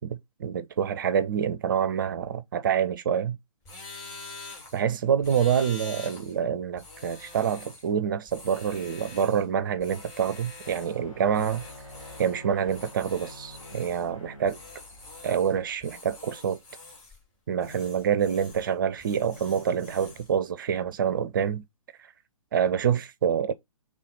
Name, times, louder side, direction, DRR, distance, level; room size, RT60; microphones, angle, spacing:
voice 1, 0.0-3.4 4.7-11.6 12.2-14.6 15.2-16.6 17.5-21.6 22.5-23.5, right 8 dB, 35° right, 0.5 m, -27 dB
sound 1, 3.6-4.8 5.2-6.4 6.8-7.9 8.3-9.5 9.8-11.0 11.3-12.4 12.7-14.1 14.5-15.6 15.8-17.2 17.6-18.7 19.0-20.3, left 3 dB, 30° left, 3.0 m, -45 dB
sound 2, 10.6-15.8, left 1 dB, 70° left, 2.1 m, -48 dB
5.7 x 3.6 x 5.2 m
figure-of-eight pair, 125°, 18 cm